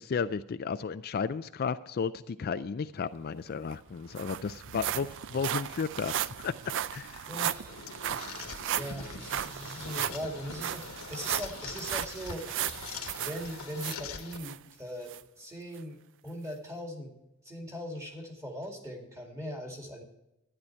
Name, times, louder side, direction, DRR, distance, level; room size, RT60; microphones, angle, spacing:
voice 1, 0.0-6.5 6.9-7.3, left 5 dB, 45° left, 11 dB, 0.4 m, -33 dB
sound 1, 3.4-3.5 3.7-14.6 15.1-15.2 15.8-15.9, right 10 dB, 60° right, 0.4 m, -36 dB
voice 2, 7.3-12.7 13.2-17.1 17.4-20.0, equal, 15° right, 2 dB, 2.2 m, -40 dB
sound 2, 7.7-14.4, left 5 dB, 80° left, 1.2 m, -43 dB
12.5 x 10.0 x 4.5 m, 0.90 s
head